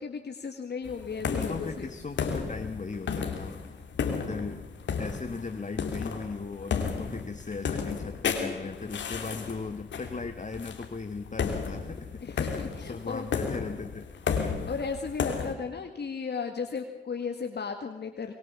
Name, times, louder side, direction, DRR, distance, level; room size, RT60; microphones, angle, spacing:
voice 1, 0.0-1.9 12.2-13.3 14.7-18.3, left 5 dB, 65° left, 4 dB, 2.0 m, -35 dB
sound 1, 0.8-15.5, left 6 dB, 90° left, 2.5 m, -33 dB
voice 2, 1.2-3.5 4.0-4.6 5.0-14.1, left 4 dB, 45° left, 7 dB, 1.5 m, -38 dB
24.0 x 21.5 x 7.0 m, 0.87 s
cardioid pair, 45°, 18 cm